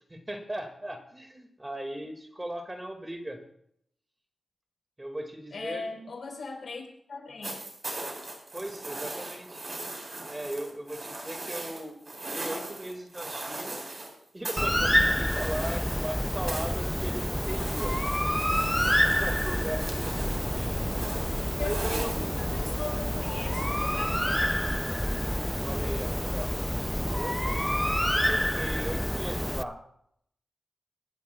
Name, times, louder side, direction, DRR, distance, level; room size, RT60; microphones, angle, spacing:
voice 1, 0.1-3.4 5.0-5.8 8.5-9.6 10.2-12.0 12.3-13.9 14.3-18.0 18.7-21.3 21.6-22.3 25.6-26.5 27.1-27.4 28.2-29.8, right 1 dB, 20° right, 4 dB, 2.0 m, -38 dB
voice 2, 5.5-6.8 7.1-7.6 21.6-24.6 25.1-25.2, left 3 dB, 70° left, 2 dB, 3.8 m, -39 dB
sound 1, 7.4-14.1 14.4-16.2 16.5-22.8 24.0-24.1, right 2 dB, 45° right, 4.6 m, -39 dB
Bird, 14.6-29.6, equal, 5° left, 0.4 m, -28 dB
25.5 x 12.0 x 2.3 m, 0.70 s
cardioid pair, 75°, 0 cm